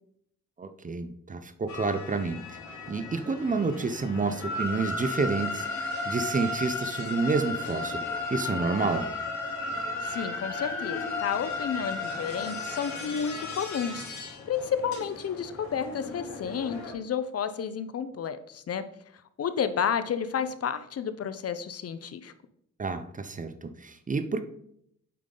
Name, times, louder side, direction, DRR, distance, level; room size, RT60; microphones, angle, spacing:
voice 1, 0.6-2.4 2.9-8.0 8.3-9.1 22.8-24.4, right 4 dB, 25° right, 11 dB, 0.6 m, -29 dB
sound 1, 1.7-16.9, left 3 dB, 70° left, 2.9 m, -35 dB
voice 2, 10.0-18.8 19.4-22.3, left 7 dB, 55° left, 12 dB, 0.6 m, -31 dB
8.5 x 5.6 x 3.8 m, 0.70 s
cardioid pair, 110°, 30 cm